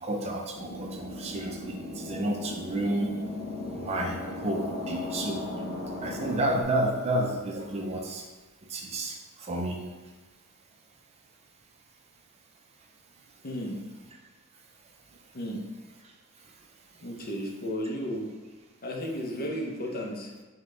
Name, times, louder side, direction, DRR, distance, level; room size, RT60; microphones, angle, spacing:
voice 1, 0.0-3.1 3.7-5.5 6.0-8.3 8.7-9.8, right 1 dB, 30° right, 2 dB, 0.4 m, -31 dB
sound 1, 0.5-6.6, left 2 dB, 60° left, 1.1 m, -37 dB
voice 2, 13.4-13.8 15.3-15.6 17.0-18.3 18.8-20.3, equal, 45° left, 0 dB, 0.6 m, -33 dB
5.0 x 2.2 x 3.7 m, 1.2 s
head